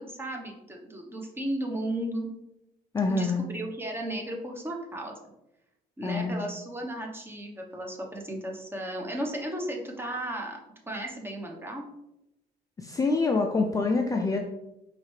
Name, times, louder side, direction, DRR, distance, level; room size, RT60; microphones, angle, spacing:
voice 1, 0.0-2.3 3.1-5.1 6.0-10.6 10.9-11.9, right 1 dB, 15° right, 1 dB, 0.9 m, -34 dB
voice 2, 2.9-3.5 6.0-6.5 12.8-14.4, left 3 dB, 20° left, 2 dB, 0.4 m, -26 dB
4.8 x 3.2 x 3.2 m, 0.87 s
cardioid pair, 110°, 17 cm